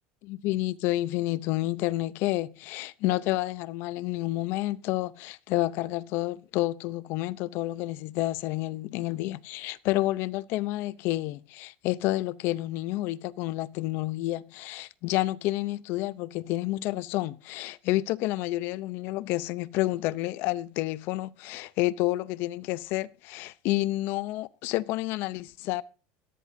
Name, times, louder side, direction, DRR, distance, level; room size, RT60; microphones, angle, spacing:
voice 1, 0.3-25.8, left 17 dB, 50° left, 0.6 m, -29 dB
17.5 x 12.5 x 2.7 m
cardioid pair, 160°, 5 cm